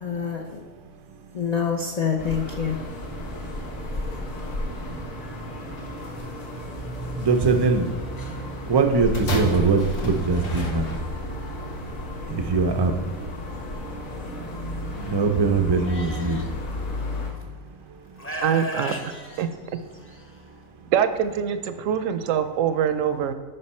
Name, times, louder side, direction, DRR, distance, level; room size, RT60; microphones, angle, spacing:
voice 1, 0.0-0.6 1.3-2.8, left 7 dB, 45° left, 2 dB, 0.5 m, -26 dB
sound 1, 2.2-17.3, left 1 dB, 85° left, 1.7 m, -33 dB
voice 2, 7.2-7.9 8.7-10.9 12.3-12.9 15.0-16.4, right 4 dB, 35° right, 5 dB, 0.4 m, -21 dB
sound 2, 9.1-11.4 12.2-12.3, left 2 dB, 70° left, 1.5 m, -33 dB
Livestock farm animals working animals, 15.8-16.5 17.4-17.5 18.2-20.2, equal, 10° left, 0.7 m, -34 dB
voice 3, 18.4-18.9 19.4-19.5 20.9-23.3, right 8 dB, 75° right, 10 dB, 1.0 m, -23 dB
9.8 x 5.5 x 4.3 m, 1.5 s
omnidirectional pair, 1.4 m